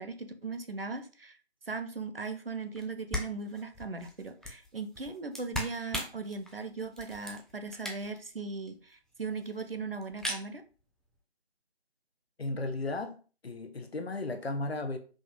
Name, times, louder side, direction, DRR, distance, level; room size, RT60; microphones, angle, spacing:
voice 1, 0.0-1.4 1.7-10.6, right 4 dB, 60° right, 0.4 m, -38 dB
sound 1, 2.8-2.9 3.1-8.3 8.7-8.8 8.9-9.0 9.2-9.7 10.0-10.4, left 1 dB, ahead, 0.3 m, -39 dB
voice 2, 12.4-13.2 13.4-15.0, left 2 dB, 65° left, 0.6 m, -34 dB
4.9 x 2.0 x 2.3 m
figure-of-eight pair, 175°, 33 cm